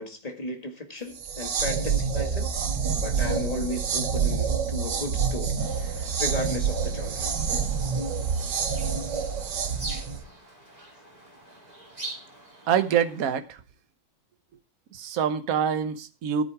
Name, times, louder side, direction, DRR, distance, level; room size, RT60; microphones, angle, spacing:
voice 1, 0.0-2.5 3.0-7.3, left 2 dB, 20° left, 1.7 m, -35 dB
sound 1, 1.2-10.2, right 6 dB, 75° right, 2.0 m, -27 dB
sound 2, 5.6-13.4, right 2 dB, 20° right, 4.2 m, -44 dB
voice 2, 12.7-13.6 14.9-16.4, right 8 dB, 55° right, 1.3 m, -25 dB
14.0 x 7.8 x 4.7 m
omnidirectional pair, 2.0 m